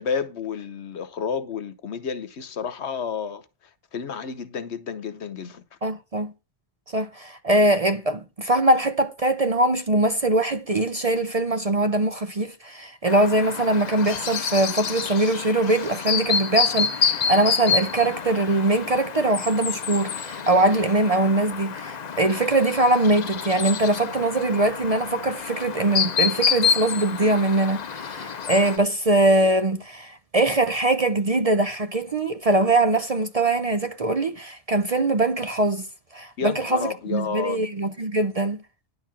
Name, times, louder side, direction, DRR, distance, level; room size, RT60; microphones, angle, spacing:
voice 1, 0.0-3.4 3.9-5.6 36.4-37.7, left 6 dB, 70° left, 1.2 m, -30 dB
voice 2, 5.8-6.3 6.9-35.9 36.1-38.6, right 2 dB, 40° right, 0.6 m, -22 dB
Chirp tweet, 13.1-28.8, left 6 dB, 45° left, 0.6 m, -28 dB
10.5 x 4.7 x 7.4 m
omnidirectional pair, 1.2 m